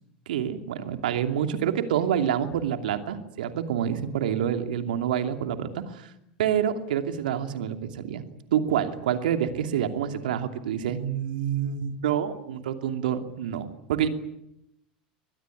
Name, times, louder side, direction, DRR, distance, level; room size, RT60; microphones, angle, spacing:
voice 1, 0.3-6.1 6.4-8.2 8.5-14.1, right 9 dB, 75° right, 7 dB, 2.7 m, -27 dB
24.0 x 20.5 x 9.9 m, 0.81 s
hypercardioid pair, 85°, 5 cm